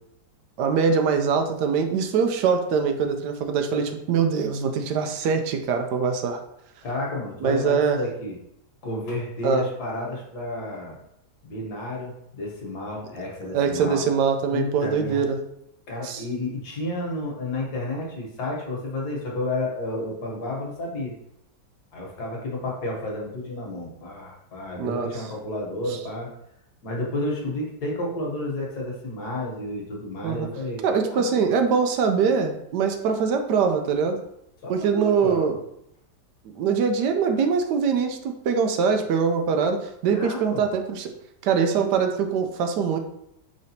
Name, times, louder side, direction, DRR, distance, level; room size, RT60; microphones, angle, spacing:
voice 1, 0.6-6.4 7.4-8.0 9.4-9.7 13.5-15.4 16.0-16.2 24.8-25.1 30.2-30.5 30.8-34.2 34.7-35.6 36.6-41.1 41.4-43.0, right 6 dB, 80° right, 6 dB, 1.1 m, -23 dB
voice 2, 6.8-8.4 8.8-11.0 11.4-14.1 14.5-15.3 15.9-21.1 21.9-26.3 26.8-31.3 34.6-35.5 40.1-40.6, left 1 dB, 65° left, -2 dB, 1.6 m, -31 dB
4.9 x 3.9 x 2.8 m, 0.77 s
omnidirectional pair, 1.8 m